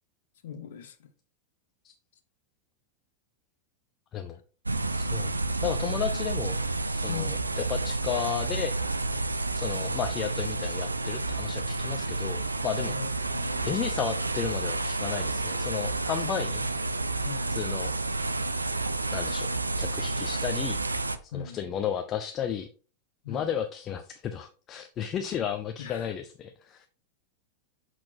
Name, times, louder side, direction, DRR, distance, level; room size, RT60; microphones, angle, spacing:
voice 1, 0.4-1.1 4.3-4.4 7.1-7.4 13.0-13.8 17.2-17.7 21.3-21.6 23.2-23.6 25.8-26.1, left 7 dB, 55° left, 0.8 m, -40 dB
sound 1, 4.7-21.2, right 2 dB, 80° right, 0.4 m, -30 dB
voice 2, 4.9-6.6 6.9-8.7 9.5-12.9 13.6-16.7 17.5-17.9 19.1-19.5 19.8-20.8 21.2-22.7 23.3-26.9, left 8 dB, 30° left, 0.5 m, -33 dB
6.3 x 6.0 x 2.8 m
figure-of-eight pair, 90°, 0 cm